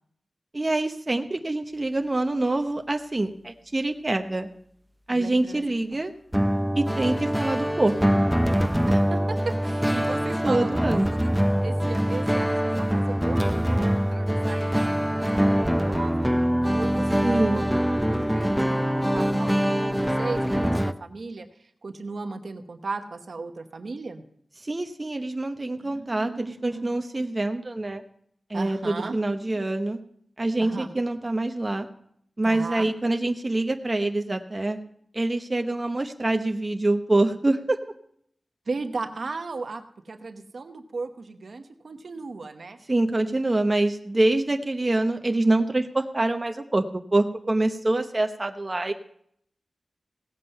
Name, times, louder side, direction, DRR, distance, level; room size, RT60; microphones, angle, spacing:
voice 1, 0.5-4.5 5.1-6.1 6.7-8.3 10.4-11.1 17.2-17.6 24.6-28.0 28.5-30.0 30.4-31.9 32.4-34.8 35.1-37.8 42.9-48.9, right 2 dB, 30° right, 5 dB, 0.8 m, -25 dB
voice 2, 5.1-5.6 8.9-11.3 11.6-16.3 16.7-24.2 25.8-26.9 28.5-29.2 30.6-30.9 32.4-32.9 38.7-42.8, right 3 dB, 65° right, 7 dB, 0.9 m, -36 dB
sound 1, 6.3-20.9, equal, 5° right, 0.4 m, -24 dB
17.0 x 7.5 x 5.4 m, 0.68 s
wide cardioid pair, 90°, 0 cm